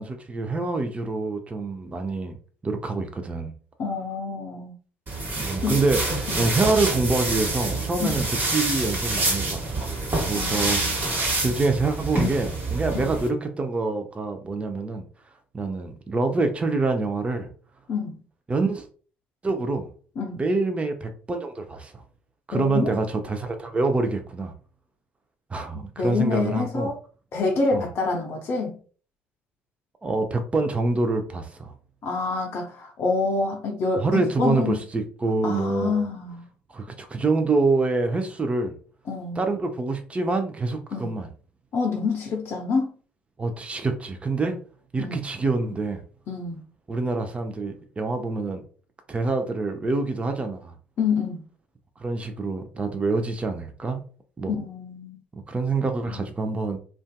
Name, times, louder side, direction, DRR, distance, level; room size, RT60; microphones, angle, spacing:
voice 1, 0.0-2.4 2.6-3.5 5.4-9.9 10.2-15.0 15.5-17.5 18.5-18.9 19.4-19.9 20.4-22.0 22.5-24.5 25.5-26.9 27.7-27.8 30.0-31.7 34.0-36.0 36.7-38.7 39.4-41.3 43.4-44.6 44.9-46.0 46.9-48.6 49.1-50.7 52.0-54.0 54.4-54.5 55.3-56.8, right 3 dB, 20° right, 0.5 m, -26 dB
voice 2, 3.8-4.7 5.6-5.8 6.3-6.4 8.0-8.2 10.3-11.0 12.9-13.1 17.9-18.2 20.2-20.4 22.5-22.9 26.0-27.0 27.3-28.8 32.0-34.8 35.4-36.5 39.1-39.4 40.9-41.1 41.7-42.9 45.0-45.2 46.3-46.6 51.0-51.4 54.5-55.2 56.1-56.2, left 4 dB, 50° left, 0.5 m, -27 dB
sound 1, 5.1-13.3, right 2 dB, 40° right, 1.1 m, -27 dB
2.5 x 2.3 x 2.2 m
figure-of-eight pair, 50°, 6 cm